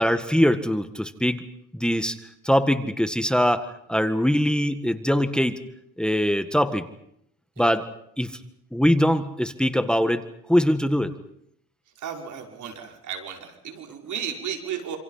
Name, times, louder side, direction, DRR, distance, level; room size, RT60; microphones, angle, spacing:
voice 1, 0.0-1.4 1.7-2.2 2.4-5.6 6.0-6.9 7.6-7.9 8.2-8.4 8.7-10.2 10.5-11.1, equal, 5° left, 9 dB, 1.7 m, -22 dB
voice 2, 11.9-15.0, right 8 dB, 75° right, 2 dB, 5.6 m, -34 dB
27.5 x 27.0 x 5.8 m, 0.74 s
cardioid pair, 90°, 30 cm